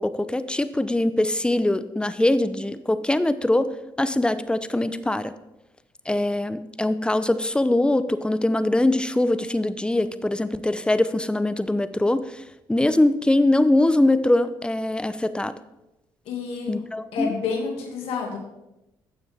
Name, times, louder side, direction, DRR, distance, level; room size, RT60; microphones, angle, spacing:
voice 1, 0.0-3.7 4.0-5.3 6.1-12.4 12.7-15.5 16.7-17.3, left 1 dB, 10° left, 13 dB, 0.7 m, -22 dB
voice 2, 16.3-16.8 17.1-18.4, left 5 dB, 75° left, 1 dB, 2.2 m, -29 dB
11.5 x 7.2 x 3.5 m, 0.94 s
hypercardioid pair, 55°, 10 cm